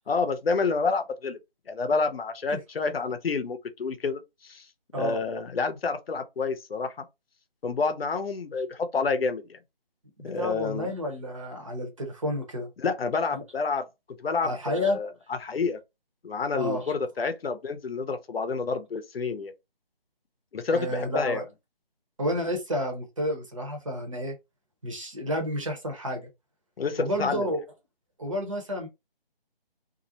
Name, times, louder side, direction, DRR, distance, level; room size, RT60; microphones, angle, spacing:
voice 1, 0.1-1.4 1.7-4.7 5.0-7.0 7.6-9.6 10.2-10.9 12.8-13.9 14.2-15.8 16.2-19.5 20.5-21.4 26.8-27.5, left 4 dB, 75° left, 0.6 m, -29 dB
voice 2, 10.2-12.7 13.3-13.4 14.4-15.0 16.6-16.8 20.7-21.4 22.2-24.4 24.8-26.2 27.0-27.6 28.2-28.9, equal, 35° right, 0.7 m, -30 dB
2.4 x 2.0 x 2.6 m
figure-of-eight pair, 165°, 30 cm